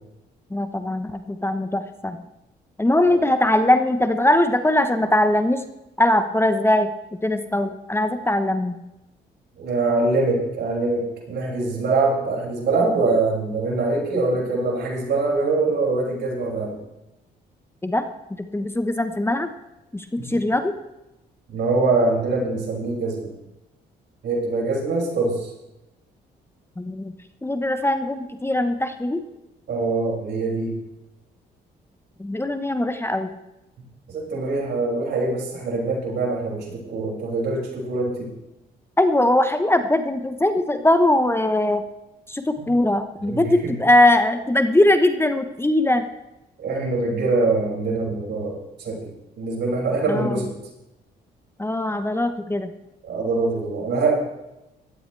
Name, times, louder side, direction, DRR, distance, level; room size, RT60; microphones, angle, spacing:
voice 1, 0.5-2.2 2.8-5.6 6.0-6.9 7.2-8.8 17.8-18.0 18.5-19.5 19.9-20.7 26.8-27.1 27.4-29.2 32.2-33.3 39.0-41.8 42.3-46.1 50.1-50.4 51.6-52.7, left 1 dB, 15° left, 8 dB, 1.1 m, -21 dB
voice 2, 9.5-16.8 20.2-20.4 21.5-23.3 24.2-25.5 29.7-30.7 34.1-38.3 42.6-42.7 43.2-43.7 46.6-49.1 49.4-50.5 53.0-54.1, right 3 dB, 70° right, -2 dB, 6.4 m, -24 dB
17.0 x 13.5 x 3.4 m, 0.93 s
supercardioid pair, 65°, 18 cm